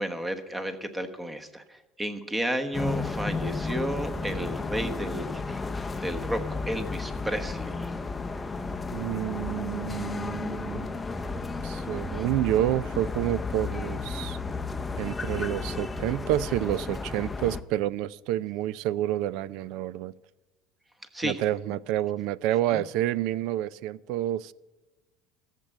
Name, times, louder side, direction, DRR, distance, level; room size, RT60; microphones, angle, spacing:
voice 1, 0.0-7.9 21.1-21.4 22.7-22.8, right 1 dB, 10° right, 8 dB, 1.1 m, -32 dB
sound 1, 2.7-17.6, left 3 dB, 15° left, 0.6 m, -33 dB
voice 2, 8.9-11.0 11.6-14.4 15.0-20.1 21.2-24.5, right 13 dB, 65° right, 21 dB, 0.4 m, -29 dB
13.5 x 7.5 x 9.1 m, 1.1 s
cardioid pair, 135°, 0 cm